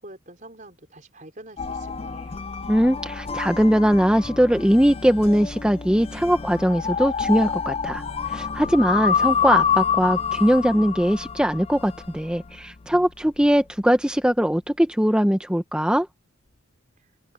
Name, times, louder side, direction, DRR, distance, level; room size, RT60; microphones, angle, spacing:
voice 1, 0.0-2.4, right 1 dB, 40° right, 5.0 m, -45 dB
sound 1, 1.6-12.6, left 7 dB, 30° left, 0.4 m, -27 dB
voice 2, 2.7-16.1, equal, 5° right, 0.9 m, -21 dB
open air
head